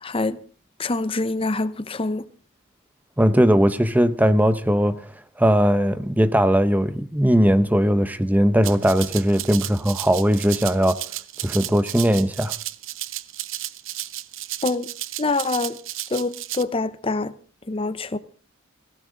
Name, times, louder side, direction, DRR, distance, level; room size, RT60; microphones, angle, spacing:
voice 1, 0.0-0.4 0.8-2.2 14.6-14.9 15.2-15.8 16.1-17.3 17.7-18.2, left 3 dB, 25° left, 0.7 m, -25 dB
voice 2, 3.2-5.1 5.4-11.0 11.4-12.5, equal, 10° right, 0.7 m, -19 dB
Rattle (instrument), 8.6-16.6, right 14 dB, 65° right, 0.8 m, -33 dB
20.5 x 17.0 x 3.8 m
head